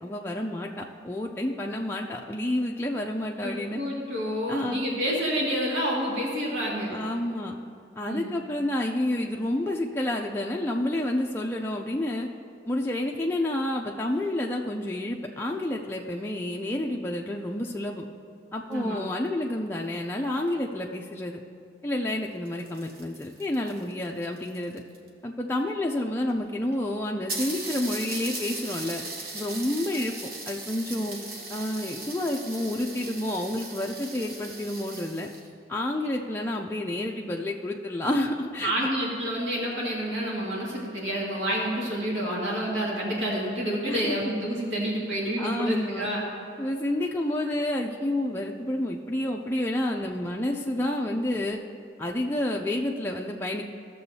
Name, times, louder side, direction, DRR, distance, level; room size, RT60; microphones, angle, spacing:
voice 1, 0.0-3.8 4.5-4.8 6.9-7.6 8.0-12.3 12.7-18.0 18.5-21.4 21.8-24.8 25.2-29.0 29.3-30.2 30.5-31.2 31.5-35.3 35.7-38.9 43.9-44.2 45.4-46.1 46.6-51.6 52.0-53.6, left 1 dB, 10° left, 0 dB, 0.3 m, -29 dB
voice 2, 3.4-6.9 8.1-8.3 18.7-19.0 38.6-46.3, equal, 80° right, -4 dB, 2.0 m, -29 dB
Coffee grinder, 22.3-25.1 26.0-26.1 26.3-26.4 26.7-26.8 27.3-35.5, right 2 dB, 50° right, 1.1 m, -38 dB
14.5 x 6.8 x 2.7 m, 2.5 s
head